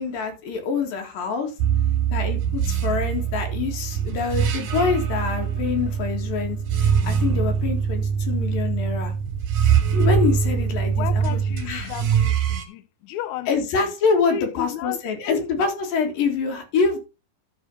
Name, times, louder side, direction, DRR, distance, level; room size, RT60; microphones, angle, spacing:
voice 1, 0.0-1.5 2.1-9.1 9.9-11.4 11.7-11.9 13.5-17.0, left 5 dB, 90° left, 3.6 m, -25 dB
sound 1, 1.6-12.6, right 7 dB, 80° right, 3.2 m, -23 dB
voice 2, 11.0-12.8 13.1-13.9 14.3-15.0 15.3-15.5, left 12 dB, 75° left, 1.9 m, -33 dB
12.0 x 4.4 x 5.4 m
omnidirectional pair, 3.9 m